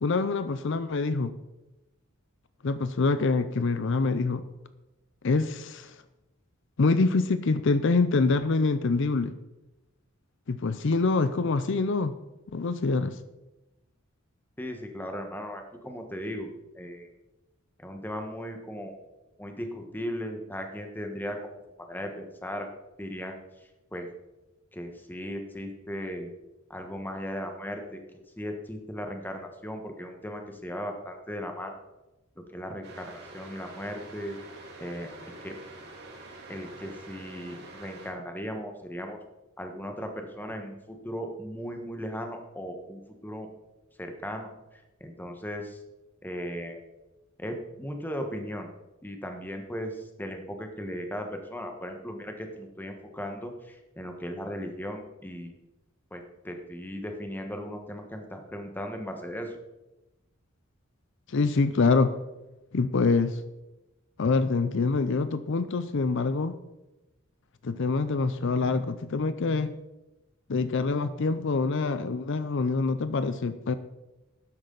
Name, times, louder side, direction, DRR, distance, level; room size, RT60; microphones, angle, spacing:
voice 1, 0.0-1.3 2.6-4.4 5.2-6.0 6.8-9.4 10.5-12.2 12.5-13.2 61.3-62.1 62.7-63.4 64.2-66.6 67.6-69.7 70.5-73.7, left 3 dB, 60° left, 12 dB, 0.5 m, -25 dB
voice 2, 14.6-16.5 16.7-17.1 17.8-18.9 19.4-21.6 21.9-22.7 23.0-23.4 23.9-24.1 24.7-26.3 26.7-27.8 28.4-31.8 32.5-34.4 34.8-35.6 36.5-39.2 39.6-43.5 44.0-45.8 46.2-46.8 47.4-48.7 49.0-55.5 56.1-59.6, equal, 10° left, 4 dB, 1.3 m, -37 dB
sound 1, 32.8-38.1, right 2 dB, 55° right, 2.5 m, -46 dB
13.0 x 10.5 x 4.0 m, 1.0 s
head